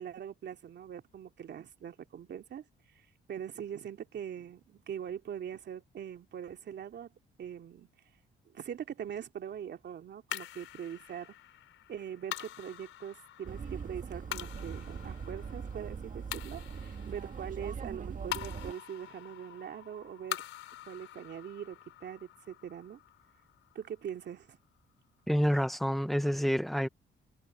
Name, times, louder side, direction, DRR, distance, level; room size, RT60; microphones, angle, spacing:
voice 1, 0.0-2.7 2.9-7.1 7.4-7.9 8.5-11.3 11.9-20.4 20.9-23.0 23.7-24.6, right 9 dB, 60° right, 2.7 m, -42 dB
sound 1, 10.3-24.8, left 13 dB, 85° left, 5.3 m, -45 dB
sound 2, 13.4-18.7, right 6 dB, 40° right, 2.0 m, -41 dB
voice 2, 25.3-26.9, equal, ahead, 0.9 m, -28 dB
cardioid pair, 90°, 20 cm